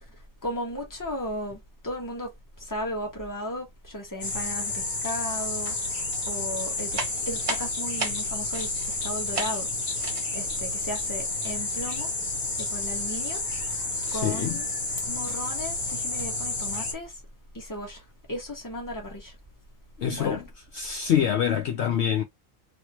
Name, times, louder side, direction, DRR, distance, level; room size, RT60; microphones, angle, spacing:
voice 1, 0.4-2.3 2.6-5.9 6.3-9.7 10.3-12.1 12.6-13.8 14.1-14.7 15.1-17.1 17.5-19.4 20.2-20.4, equal, 15° left, 1.2 m, -35 dB
sound 1, 4.2-16.9, left 2 dB, 80° left, 1.6 m, -30 dB
sound 2, 5.7-6.0 6.3-9.0 9.3-9.6 9.9-10.4, right 3 dB, 30° right, 0.7 m, -34 dB
voice 2, 14.1-14.6 20.0-20.5 20.7-22.2, left 9 dB, 65° left, 0.8 m, -25 dB
3.1 x 2.8 x 2.9 m
omnidirectional pair, 1.4 m